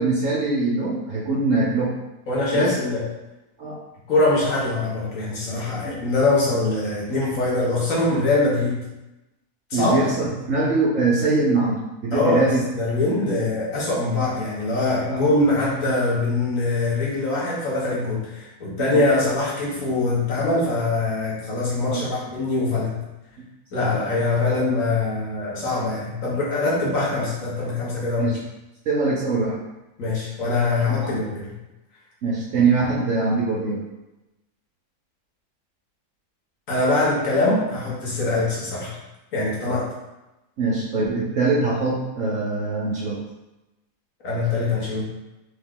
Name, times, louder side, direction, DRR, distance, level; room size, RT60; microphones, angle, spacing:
voice 1, 0.0-1.9 2.5-2.7 3.6-3.8 5.8-6.0 9.7-12.6 15.1-15.3 18.8-19.2 21.9-22.0 23.7-23.9 24.5-24.6 26.0-26.1 28.2-28.4 28.9-29.6 31.0-31.1 32.2-33.8 40.6-43.2, right 3 dB, 60° right, -5 dB, 1.0 m, -23 dB
voice 2, 2.3-3.0 4.1-8.8 9.7-10.0 12.1-23.0 23.7-28.4 30.0-31.5 36.7-38.9 39.3-39.9 44.2-45.1, left 2 dB, 55° left, -5 dB, 1.5 m, -23 dB
3.5 x 3.1 x 3.6 m, 0.99 s
omnidirectional pair, 1.7 m